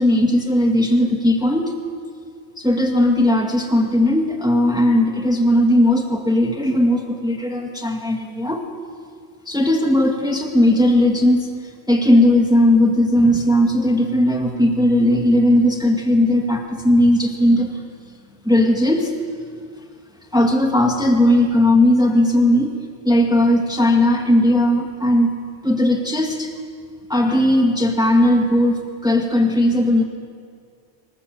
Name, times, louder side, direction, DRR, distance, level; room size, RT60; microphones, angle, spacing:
voice 1, 0.0-1.7 2.6-8.6 9.5-11.5 11.9-17.7 18.5-19.1 20.3-22.8 23.0-25.3 25.6-26.5 27.1-30.0, left 1 dB, 5° right, 2 dB, 2.0 m, -17 dB
25.0 x 21.0 x 7.8 m, 2.2 s
omnidirectional pair, 1.3 m